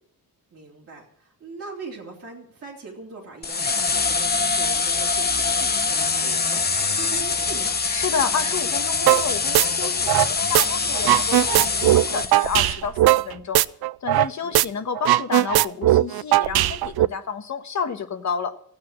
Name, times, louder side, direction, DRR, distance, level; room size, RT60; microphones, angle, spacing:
voice 1, 0.5-7.8 11.6-12.1 14.4-14.8, right 4 dB, 40° right, -4 dB, 3.5 m, -41 dB
sound 1, 3.4-12.7, left 4 dB, 25° left, 0.8 m, -24 dB
voice 2, 7.9-13.6 14.0-18.5, left 6 dB, 50° left, 7 dB, 1.4 m, -30 dB
sound 2, 9.1-9.3 9.5-10.7 10.9-14.3 14.5-14.7 15.0-17.1, right 14 dB, 90° right, 0.5 m, -18 dB
15.5 x 8.7 x 7.4 m, 0.65 s
wide cardioid pair, 170°, 37 cm